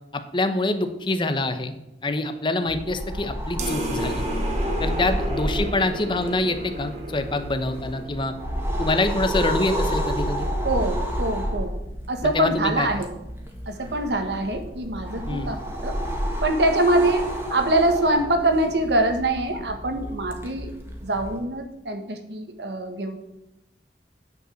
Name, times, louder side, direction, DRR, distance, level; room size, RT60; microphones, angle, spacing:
voice 1, 0.3-1.7 2.0-4.2 4.8-8.4 8.8-10.5 12.2-12.9 15.3-15.5, left 2 dB, 30° left, 8 dB, 0.9 m, -25 dB
sound 1, 2.7-21.4, equal, 15° right, 1.7 m, -30 dB
sound 2, 3.6-8.5, equal, 40° right, 1.8 m, -33 dB
voice 2, 10.6-11.7 12.1-13.1 13.7-15.6 15.8-15.9 16.4-20.7 21.0-23.2, right 1 dB, 70° right, 6 dB, 1.5 m, -24 dB
9.7 x 5.4 x 7.8 m, 0.90 s
head